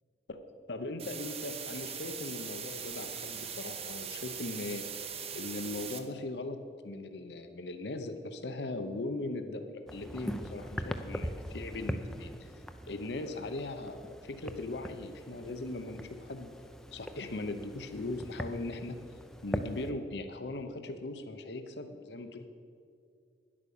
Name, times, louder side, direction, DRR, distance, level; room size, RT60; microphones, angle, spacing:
voice 1, 0.7-4.8 5.3-6.6 6.8-16.5 16.9-19.0 19.4-22.5, left 2 dB, 70° left, 7 dB, 0.7 m, -39 dB
sound 1, 1.0-6.0, right 7 dB, 35° right, 0.8 m, -41 dB
sound 2, 9.9-19.9, equal, 5° left, 0.5 m, -41 dB
10.5 x 8.6 x 6.9 m, 2.3 s
head